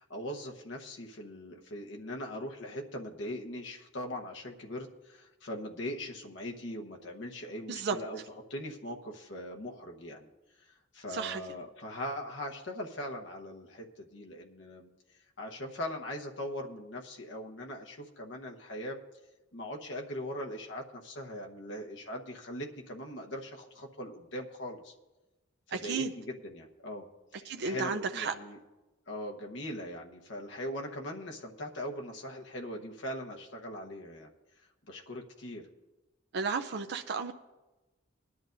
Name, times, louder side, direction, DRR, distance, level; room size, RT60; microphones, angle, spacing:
voice 1, 0.0-8.2 8.5-10.3 10.7-14.9 15.4-19.0 19.5-24.9 25.7-27.0 27.3-28.6 29.1-34.3 34.8-35.7, left 1 dB, 65° left, 1 dB, 1.1 m, -40 dB
voice 2, 11.1-11.4 25.7-26.1 27.4-28.3 36.3-37.3, right 5 dB, 60° right, 6 dB, 0.5 m, -33 dB
20.0 x 11.0 x 2.6 m, 1.1 s
head